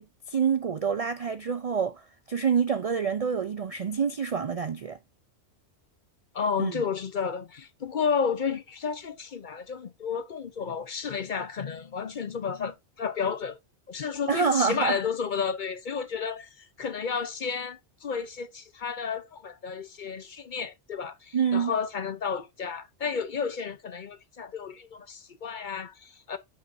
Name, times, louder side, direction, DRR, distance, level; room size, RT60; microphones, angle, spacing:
voice 1, 0.0-5.0 6.6-6.8 14.3-15.0 21.3-21.7, right 6 dB, 55° right, 0.4 m, -27 dB
voice 2, 6.3-13.6 13.9-26.4, left 6 dB, 50° left, 0.7 m, -32 dB
7.7 x 5.5 x 2.6 m
omnidirectional pair, 1.2 m